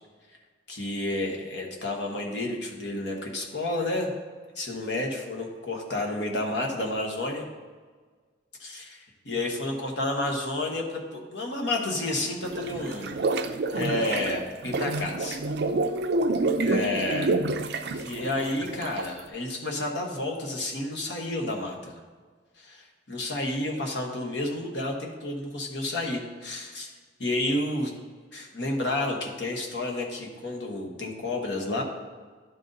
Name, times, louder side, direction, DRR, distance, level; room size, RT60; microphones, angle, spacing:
voice 1, 0.7-4.1 4.5-7.4 8.6-9.0 9.2-15.4 16.6-17.3 17.9-22.0 22.6-26.9 27.2-27.9 28.3-31.8, left 2 dB, 65° left, 0 dB, 1.2 m, -30 dB
sound 1, 12.4-19.2, right 2 dB, 60° right, 0.4 m, -28 dB
11.5 x 4.0 x 3.9 m, 1.5 s
head